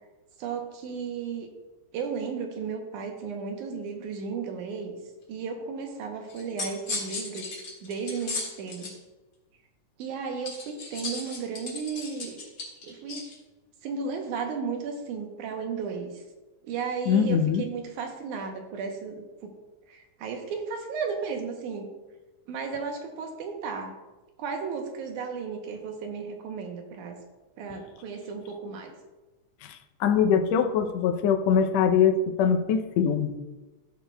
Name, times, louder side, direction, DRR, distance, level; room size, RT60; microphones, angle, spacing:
voice 1, 0.4-1.5 1.9-5.0 5.3-8.9 10.0-12.4 12.8-13.3 13.8-16.2 16.6-19.5 19.9-21.9 22.5-23.9 24.4-27.2 27.6-28.9, right 5 dB, 75° right, 3 dB, 2.2 m, -34 dB
sound 1, 6.3-8.9 10.4-13.3, left 3 dB, 40° left, 2.0 m, -36 dB
voice 2, 17.1-17.6 29.6-33.3, left 7 dB, 85° left, 5 dB, 1.5 m, -23 dB
15.5 x 6.6 x 2.2 m, 1.1 s
omnidirectional pair, 3.7 m